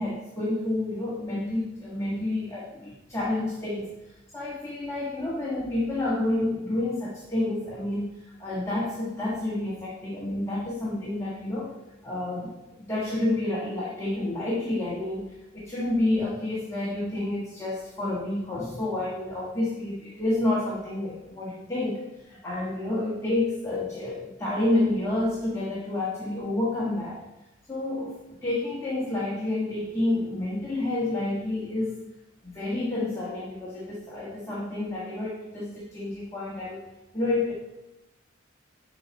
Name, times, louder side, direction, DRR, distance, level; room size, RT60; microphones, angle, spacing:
voice 1, 0.0-3.9 4.3-11.7 12.0-12.5 12.8-27.2 27.7-32.0 32.4-36.9 37.1-37.5, left 2 dB, 15° left, -6 dB, 1.5 m, -29 dB
11.5 x 4.1 x 4.4 m, 0.98 s
head